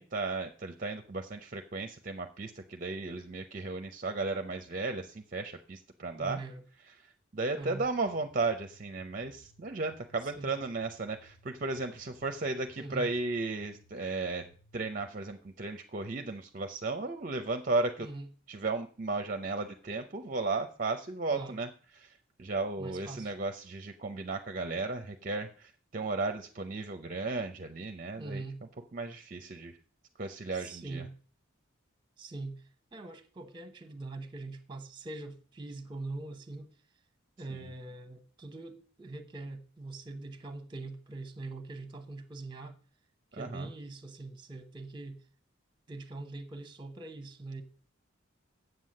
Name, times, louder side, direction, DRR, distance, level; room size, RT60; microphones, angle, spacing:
voice 1, 0.0-6.4 7.0-14.5 14.7-18.1 18.5-21.7 21.9-28.4 28.9-29.8 30.2-31.1 37.5-37.7 43.3-43.7, right 3 dB, 40° right, 0.6 m, -35 dB
voice 2, 6.1-6.6 7.5-7.8 10.2-10.6 12.8-13.1 18.0-18.3 21.3-21.6 22.8-23.3 28.2-28.6 30.5-31.1 32.2-32.6 32.9-36.7 37.4-42.8 43.3-45.2 45.9-47.6, right 2 dB, 25° right, 1.0 m, -42 dB
sound 1, 7.6-15.0, equal, 65° left, 1.0 m, -62 dB
7.9 x 7.5 x 6.4 m
head